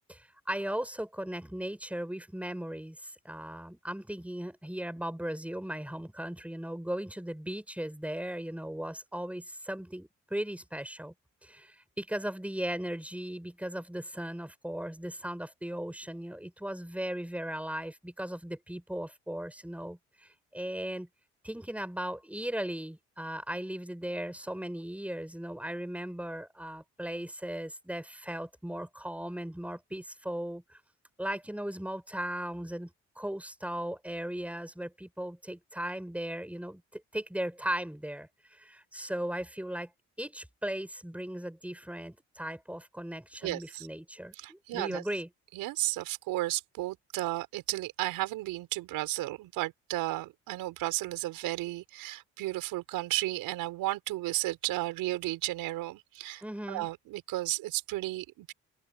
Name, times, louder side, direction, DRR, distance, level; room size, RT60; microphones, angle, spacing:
voice 1, 0.1-11.1 11.4-21.1 21.4-30.8 31.2-39.9 40.2-45.3 56.4-56.9, right 1 dB, 5° right, 6.2 m, -37 dB
voice 2, 43.4-43.9 44.4-45.0 45.5-56.4 56.7-58.5, right 17 dB, 80° right, 5.3 m, -33 dB
supercardioid pair, 55°, 34 cm